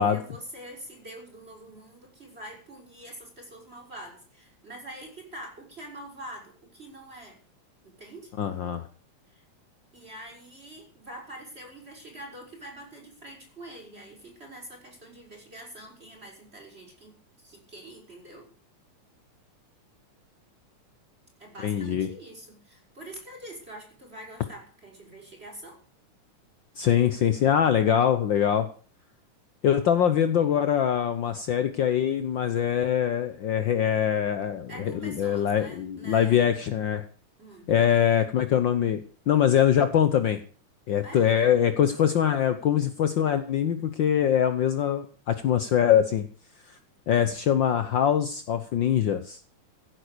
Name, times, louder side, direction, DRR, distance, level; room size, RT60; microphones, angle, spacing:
voice 1, 0.0-7.4 7.8-8.3 9.3-9.4 9.9-18.5 21.4-25.8 34.7-36.5 37.4-37.7 41.0-41.2, right 1 dB, 20° right, 1 dB, 5.8 m, -45 dB
voice 2, 8.4-8.9 21.6-22.1 26.8-28.7 29.6-37.0 37.7-40.4 40.9-46.3 46.7-46.8 47.1-49.4, left 9 dB, 75° left, 10 dB, 1.0 m, -23 dB
16.0 x 9.2 x 6.8 m, 0.42 s
omnidirectional pair, 3.5 m